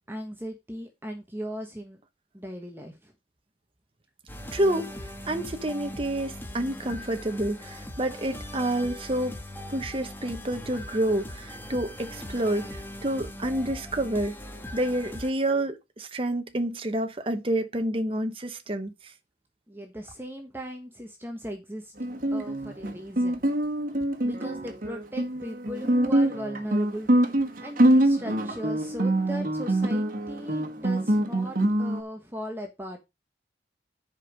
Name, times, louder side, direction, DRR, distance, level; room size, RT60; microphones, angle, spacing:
voice 1, 0.1-2.0 2.3-3.1 19.7-21.9 22.3-23.4 24.2-27.1 27.4-33.0, equal, 10° right, 1.2 m, -38 dB
sound 1, 4.3-15.3, left 1 dB, 10° left, 1.5 m, -40 dB
voice 2, 4.5-4.9 5.3-9.4 9.7-14.4 14.7-19.1, right 1 dB, 30° right, 1.0 m, -28 dB
Guitar, 22.0-32.0, right 1 dB, 50° right, 1.7 m, -24 dB
11.0 x 5.4 x 5.0 m
head